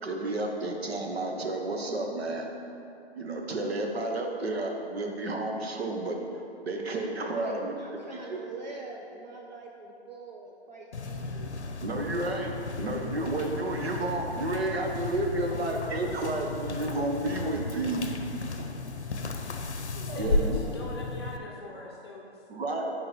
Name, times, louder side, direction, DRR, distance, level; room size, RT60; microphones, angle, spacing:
voice 1, 0.0-2.5 3.1-6.2 6.6-7.7 8.3-8.4 11.8-12.5 12.8-18.0 20.2-20.6 22.5-22.9, right 2 dB, 70° right, 2 dB, 1.0 m, -31 dB
voice 2, 7.4-11.6 18.6-18.7 19.9-20.7, right 3 dB, 40° right, -1 dB, 0.5 m, -44 dB
sound 1, 10.9-21.4, left 3 dB, 90° left, 0.7 m, -34 dB
voice 3, 20.0-22.4, left 2 dB, 25° left, -3 dB, 0.7 m, -42 dB
8.6 x 4.7 x 3.0 m, 2.7 s
figure-of-eight pair, 145°, 33 cm